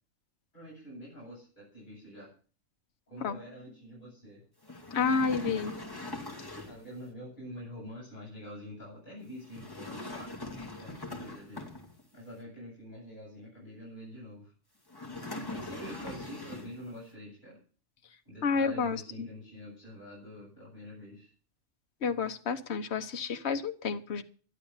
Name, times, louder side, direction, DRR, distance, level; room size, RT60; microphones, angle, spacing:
voice 1, 0.5-2.3 3.1-4.5 6.6-10.3 10.8-11.8 12.1-14.5 15.1-17.6 18.2-21.3, equal, 40° left, -6 dB, 8.3 m, -46 dB
sound 1, 4.6-6.9 9.4-12.2 14.9-16.9, left 2 dB, 20° left, 2.5 m, -41 dB
voice 2, 4.9-5.7 18.4-19.3 22.0-24.2, left 5 dB, 60° left, 7 dB, 1.3 m, -30 dB
12.0 x 11.5 x 7.3 m, 0.40 s
omnidirectional pair, 1.3 m